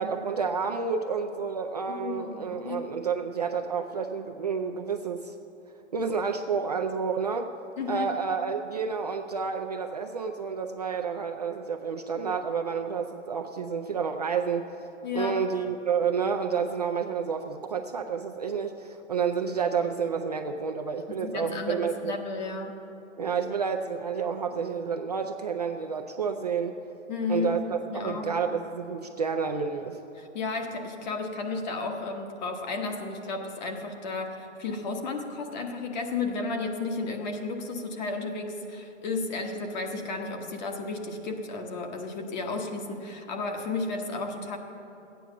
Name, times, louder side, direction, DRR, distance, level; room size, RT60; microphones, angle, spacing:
voice 1, 0.0-5.3 5.9-7.5 7.9-14.7 15.1-22.2 23.2-26.8 27.3-30.0, right 6 dB, 35° right, 3 dB, 0.4 m, -30 dB
voice 2, 1.9-2.8 7.8-8.1 15.0-15.4 21.2-22.8 27.1-28.3 30.1-44.6, left 3 dB, 35° left, 3 dB, 1.3 m, -33 dB
13.5 x 9.2 x 7.0 m, 3.0 s
hypercardioid pair, 160°, 37 cm